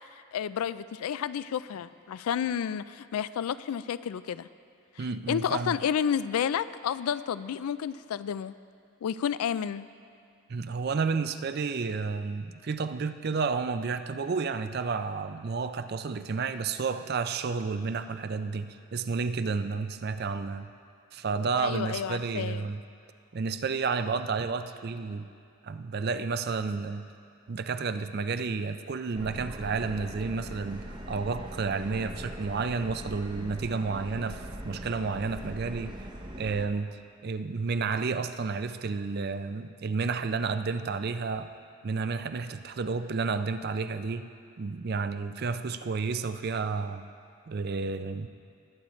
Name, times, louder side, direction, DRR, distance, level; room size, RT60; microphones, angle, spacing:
voice 1, 0.1-4.5 5.0-8.5 9.0-9.9 21.6-22.7, left 8 dB, 80° left, 15 dB, 0.3 m, -31 dB
voice 2, 5.0-5.8 10.5-20.7 21.1-22.8 23.3-25.3 25.6-27.0 27.5-36.0 36.4-41.5 41.8-44.3 44.6-47.1 47.5-48.3, right 4 dB, 45° right, 10 dB, 0.4 m, -31 dB
Subway metro underground, 29.2-36.7, right 1 dB, 20° right, 0.7 m, -41 dB
20.0 x 8.5 x 3.1 m, 2.5 s
head